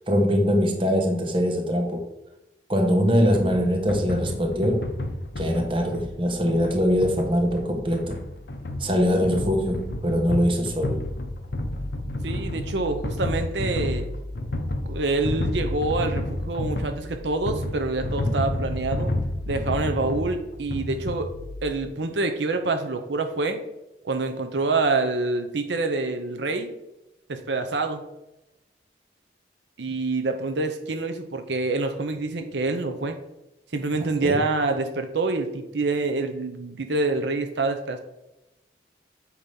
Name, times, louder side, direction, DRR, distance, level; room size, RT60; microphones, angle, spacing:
voice 1, 0.1-2.1 2.7-4.9 5.4-8.2 8.8-11.0 34.2-34.4, equal, 30° right, 3 dB, 1.1 m, -22 dB
sound 1, 3.3-21.7, left 1 dB, 75° left, 0.8 m, -31 dB
voice 2, 12.2-14.1 14.8-19.1 19.5-21.3 21.6-23.6 24.0-26.7 27.3-28.0 29.8-33.2 33.7-38.0, right 3 dB, 80° right, 6 dB, 0.7 m, -26 dB
8.4 x 2.9 x 5.4 m, 0.95 s
head